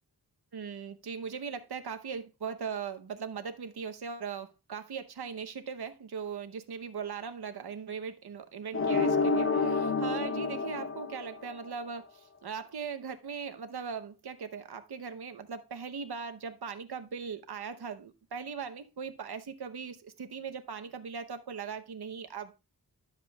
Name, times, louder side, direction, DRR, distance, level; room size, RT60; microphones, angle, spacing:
voice 1, 0.5-22.5, right 6 dB, 85° right, 0.9 m, -39 dB
sound 1, 8.7-11.7, left 4 dB, 35° left, 0.7 m, -29 dB
12.0 x 7.5 x 2.3 m
wide cardioid pair, 85°, 38 cm